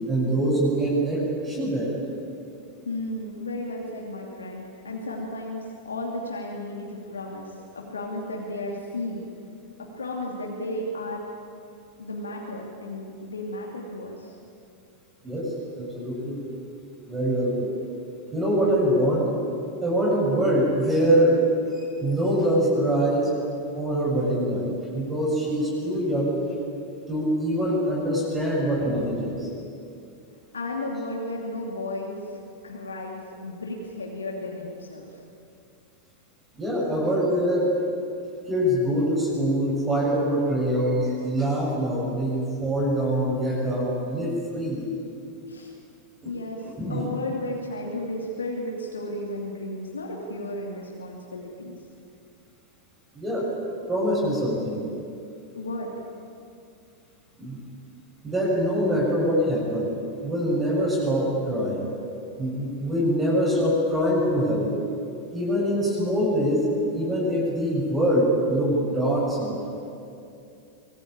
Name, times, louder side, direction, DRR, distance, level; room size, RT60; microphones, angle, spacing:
voice 1, 0.1-2.0 15.2-16.4 17.1-17.7 18.3-19.3 19.8-21.4 21.7-23.3 23.7-26.4 27.1-29.5 36.6-37.7 38.5-44.9 46.2-46.3 46.6-47.0 53.1-53.5 53.9-54.8 57.4-57.6 58.2-59.9 60.2-61.9 62.4-64.7 65.3-69.8, equal, 15° right, -3 dB, 7.5 m, -24 dB
voice 2, 2.9-7.5 7.7-9.2 10.0-11.2 12.0-14.3 30.5-35.1 45.5-45.7 46.2-46.6 46.9-51.8 55.5-56.1, left 1 dB, 75° left, -1 dB, 2.8 m, -33 dB
24.5 x 20.5 x 9.0 m, 2.6 s
figure-of-eight pair, 90°, 0 cm